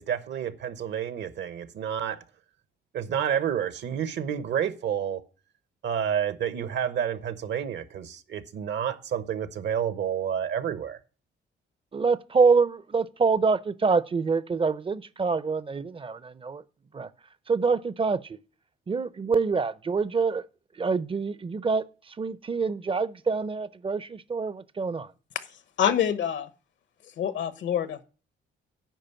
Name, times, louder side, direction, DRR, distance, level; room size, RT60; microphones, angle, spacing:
voice 1, 0.0-2.2 2.9-5.2 5.8-11.0, right 9 dB, 65° right, 1.0 m, -29 dB
voice 2, 11.9-16.6 16.9-17.1 17.5-18.4 18.9-20.4 20.7-25.1, right 4 dB, 25° right, 0.6 m, -26 dB
voice 3, 25.8-26.5 27.2-28.0, left 9 dB, 70° left, 1.0 m, -26 dB
9.2 x 5.2 x 6.9 m
cardioid pair, 90°, 20 cm